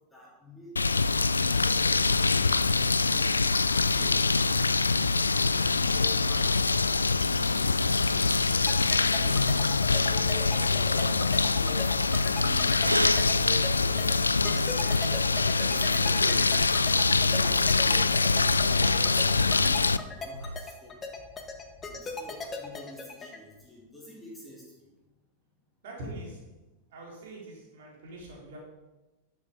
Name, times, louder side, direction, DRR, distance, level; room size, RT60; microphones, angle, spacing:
voice 1, 0.1-3.3 3.7-4.2 4.8-7.7 8.0-9.6 10.1-11.3 11.6-12.0 12.4-12.8 13.4-14.2 14.7-15.1 15.5-16.5 17.1-20.9 21.8-25.0, left 1 dB, 5° left, -6 dB, 3.5 m, -48 dB
sound 1, 0.8-20.0, left 4 dB, 80° left, 0.3 m, -24 dB
sound 2, 8.7-23.4, left 4 dB, 20° left, 1.4 m, -39 dB
sound 3, 10.9-15.5 16.0-16.1 16.4-16.5 17.0-20.8, right 1 dB, 85° right, 0.3 m, -37 dB
voice 2, 25.8-26.4 26.9-28.6, right 1 dB, 55° right, -3 dB, 3.9 m, -43 dB
11.5 x 7.3 x 5.3 m, 1.1 s
figure-of-eight pair, 90°, 0 cm